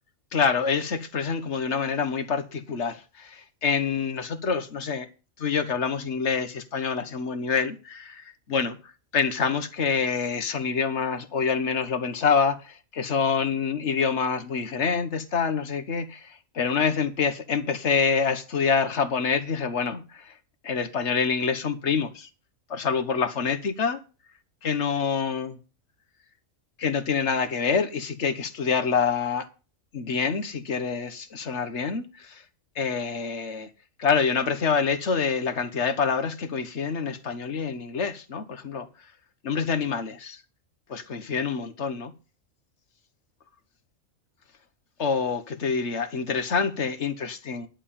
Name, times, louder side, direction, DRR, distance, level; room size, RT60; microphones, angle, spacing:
voice 1, 0.3-5.1 5.4-20.3 20.6-22.3 22.7-24.0 24.6-25.6 26.8-29.5 29.9-32.4 32.7-33.7 34.0-38.9 39.4-40.4 40.9-42.1 45.0-47.7, left 5 dB, 60° left, 1.4 m, -26 dB
11.0 x 5.6 x 8.6 m
omnidirectional pair, 1.4 m